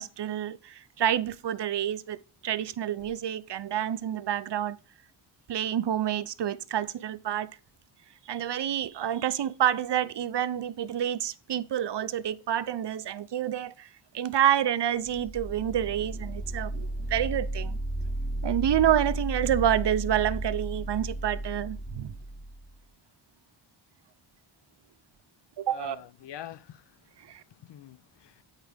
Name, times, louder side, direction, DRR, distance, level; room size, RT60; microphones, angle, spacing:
voice 1, 0.0-2.2 2.4-4.8 5.5-7.5 8.3-17.8 18.4-22.1 25.6-26.0 27.2-27.4, right 10 dB, 55° right, 0.6 m, -28 dB
sound 1, 14.9-22.7, right 1 dB, 5° right, 0.8 m, -34 dB
voice 2, 25.7-26.9 27.2-28.4, left 11 dB, 60° left, 0.5 m, -46 dB
8.9 x 4.6 x 5.0 m
wide cardioid pair, 170°, 49 cm